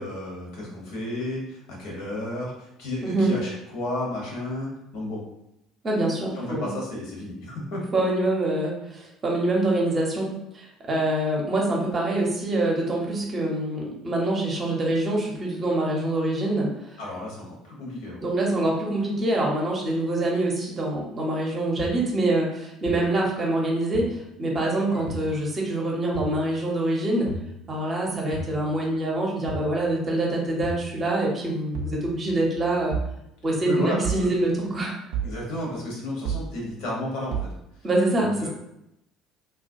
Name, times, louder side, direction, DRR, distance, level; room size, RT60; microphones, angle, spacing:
voice 1, 0.0-5.2 6.3-7.8 17.0-18.2 24.9-25.0 33.6-34.3 35.2-37.5 38.1-38.5, left 1 dB, 60° left, -3 dB, 0.8 m, -32 dB
voice 2, 3.0-3.3 5.8-6.7 7.9-10.3 10.5-16.7 18.2-24.1 24.4-27.3 27.7-32.9 33.4-34.9 37.8-38.5, right 2 dB, 35° right, -2 dB, 0.7 m, -25 dB
sound 1, 21.8-21.9 22.9-23.0 23.9-24.0 25.1-25.2 26.1-26.3 27.3-27.5 28.3-28.5 29.5-29.7 30.6-30.8 31.7-32.0 32.9-33.1 34.0-34.3 35.1-35.4 36.3-36.5 37.3-37.5, right 5 dB, 65° right, 0.4 m, -30 dB
2.3 x 2.2 x 2.5 m, 0.83 s
figure-of-eight pair, 55°, 0 cm